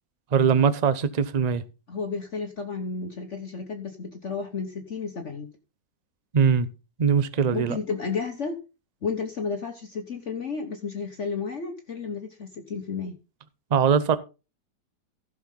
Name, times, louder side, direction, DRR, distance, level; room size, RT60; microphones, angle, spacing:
voice 1, 0.3-1.6 6.3-6.7 7.0-7.8 13.7-14.2, right 6 dB, 45° right, 0.5 m, -21 dB
voice 2, 1.9-5.5 7.5-8.6 9.0-13.1, left 5 dB, 45° left, 1.5 m, -32 dB
15.5 x 6.6 x 3.8 m
omnidirectional pair, 1.9 m